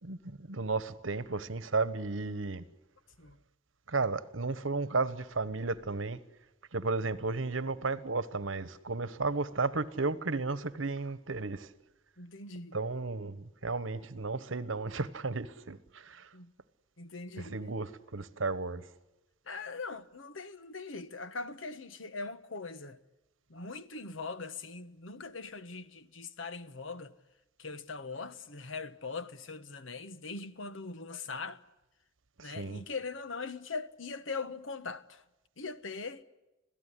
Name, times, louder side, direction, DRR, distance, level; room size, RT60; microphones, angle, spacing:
voice 1, 0.0-2.6 3.9-6.2 6.7-11.7 12.7-16.3 17.4-18.9 32.4-32.8, right 3 dB, 75° right, 1.2 m, -34 dB
voice 2, 12.2-12.8 16.3-16.5 17.0-17.6 19.5-23.0 23.5-27.1 27.6-31.6 32.4-35.2 35.6-36.2, left 4 dB, 75° left, 1.3 m, -41 dB
26.5 x 17.0 x 10.0 m
head